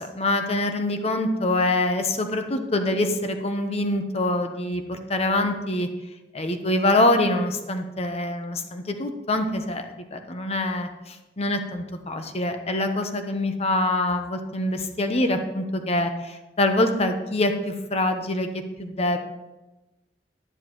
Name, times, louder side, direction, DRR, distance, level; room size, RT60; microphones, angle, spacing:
voice 1, 0.0-5.9 6.3-19.2, left 1 dB, 35° left, 6 dB, 0.9 m, -25 dB
11.0 x 10.0 x 3.1 m, 1.1 s
head